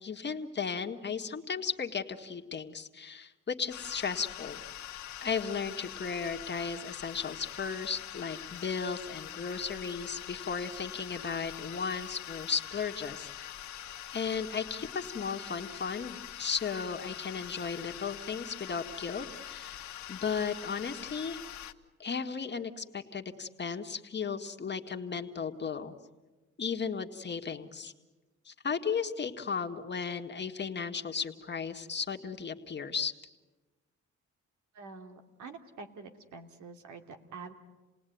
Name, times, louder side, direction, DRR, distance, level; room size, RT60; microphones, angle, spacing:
voice 1, 0.0-4.6 5.2-13.3 14.1-21.4 22.0-25.9 26.6-27.9 28.4-33.1, left 6 dB, 35° left, 5 dB, 1.8 m, -35 dB
sound 1, 3.7-21.7, left 11 dB, 70° left, 1.4 m, -44 dB
voice 2, 34.7-37.5, right 4 dB, 75° right, 5 dB, 2.8 m, -47 dB
29.0 x 19.0 x 9.4 m, 1.2 s
cardioid pair, 90°, 30 cm